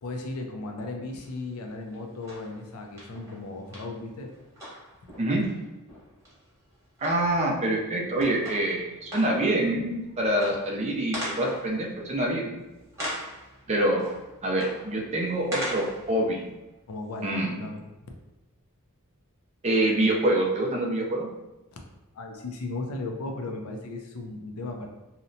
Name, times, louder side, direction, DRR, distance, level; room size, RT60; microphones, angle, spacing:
voice 1, 0.0-4.3 16.9-17.8 21.7-21.8 22.1-24.9, left 2 dB, 70° left, 2 dB, 0.4 m, -36 dB
sound 1, 1.2-1.4 1.9-16.6 17.2-17.3, equal, 15° right, 1.0 m, -41 dB
voice 2, 7.0-12.5 13.7-14.0 14.4-16.5 17.2-17.6 19.6-21.3, right 1 dB, 30° right, -1 dB, 0.4 m, -26 dB
2.7 x 2.1 x 2.6 m, 1.0 s
head